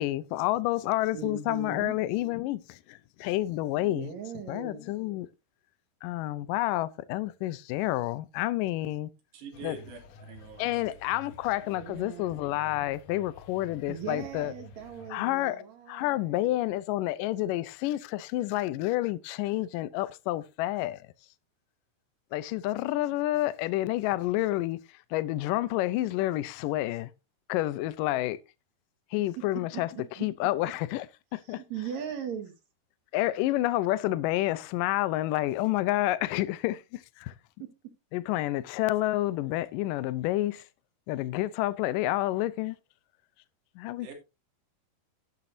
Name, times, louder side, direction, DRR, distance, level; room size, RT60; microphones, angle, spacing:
voice 1, 0.0-4.1 4.5-5.3 6.0-9.1 9.6-9.8 10.6-14.5 15.1-15.6 15.9-21.1 22.3-24.8 25.1-27.1 27.5-28.4 29.1-29.9 30.2-31.1 31.3-31.6 33.1-37.3 38.1-40.6 41.1-42.8 43.8-44.1, left 16 dB, 90° left, 1.9 m, -29 dB
voice 2, 1.1-2.0 3.8-4.8 11.7-12.4 13.9-16.6 29.4-30.5 31.4-32.5 37.6-37.9, right 7 dB, 55° right, 2.4 m, -40 dB
voice 3, 9.3-10.9 11.3-11.4 11.6-11.7 44.0-44.1, right 4 dB, 80° right, 5.1 m, -45 dB
sound 1, 9.5-15.1, left 2 dB, 70° left, 1.6 m, -51 dB
12.0 x 11.0 x 2.7 m
omnidirectional pair, 4.8 m